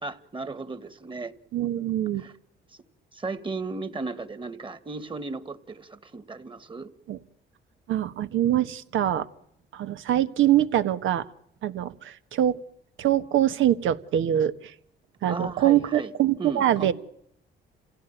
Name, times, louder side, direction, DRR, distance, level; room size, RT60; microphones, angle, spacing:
voice 1, 0.0-1.3 1.6-1.7 2.2-2.3 3.1-6.9 15.3-16.1 16.4-16.9, right 3 dB, 25° right, 13 dB, 2.0 m, -35 dB
voice 2, 1.5-2.3 7.1-7.2 7.9-9.3 9.7-11.3 11.6-12.6 13.0-14.7 15.2-16.9, right 12 dB, 80° right, 12 dB, 1.5 m, -24 dB
28.5 x 17.0 x 9.2 m, 0.74 s
cardioid pair, 90°, 20 cm